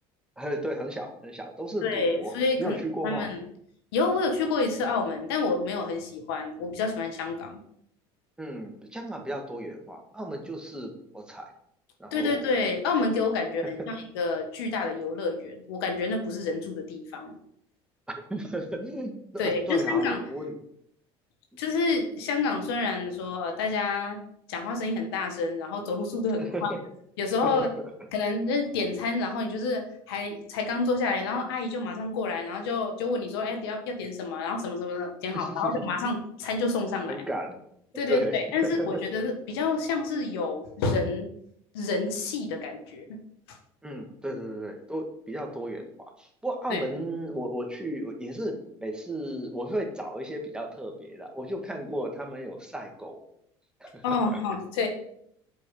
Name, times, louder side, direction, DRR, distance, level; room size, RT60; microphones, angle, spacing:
voice 1, 0.4-3.3 8.4-11.5 12.0-12.5 18.1-20.5 26.4-26.8 27.4-27.7 35.3-35.7 36.0-36.1 37.1-37.6 38.1-39.0 43.8-53.2 53.8-54.4, right 1 dB, 5° right, 2 dB, 1.7 m, -34 dB
voice 2, 1.8-2.8 3.0-3.4 3.9-7.6 12.1-17.3 19.4-20.2 21.6-24.2 24.5-26.5 27.2-27.7 28.1-37.1 37.9-41.3 41.7-43.2 43.5-43.6 46.7-46.8 54.0-54.9, left 3 dB, 85° left, 4 dB, 1.4 m, -28 dB
7.8 x 4.8 x 4.8 m, 0.70 s
supercardioid pair, 90°, 12 cm